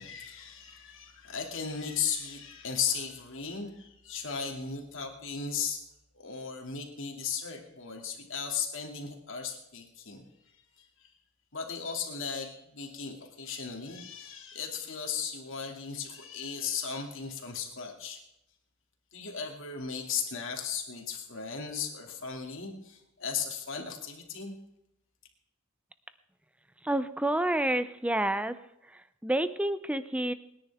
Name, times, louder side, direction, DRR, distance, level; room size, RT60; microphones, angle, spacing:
voice 1, 0.0-5.8 6.1-10.2 10.8-10.9 11.5-18.2 19.1-24.5, left 6 dB, 60° left, 2 dB, 2.6 m, -36 dB
voice 2, 26.8-28.6 28.9-30.3, right 1 dB, 5° right, 12 dB, 0.5 m, -29 dB
27.5 x 10.0 x 3.6 m, 0.82 s
head